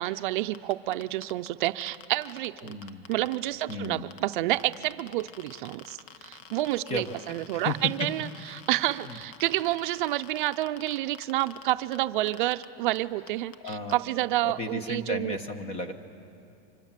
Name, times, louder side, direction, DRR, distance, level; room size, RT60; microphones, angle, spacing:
voice 1, 0.0-2.8 3.1-15.4, right 16 dB, 55° right, 10 dB, 0.5 m, -29 dB
sound 1, 0.5-3.9 4.1-12.0 12.3-12.6 12.9-13.0 13.3-13.9, left 7 dB, 80° left, 1.3 m, -48 dB
voice 2, 2.6-3.1 3.7-4.1 6.9-7.1 7.5-8.1 8.4-8.6 9.0-9.2 13.6-14.0 14.4-15.9, left 2 dB, 20° left, 9 dB, 1.1 m, -34 dB
29.5 x 25.5 x 7.4 m, 2.6 s
supercardioid pair, 180°, 30 cm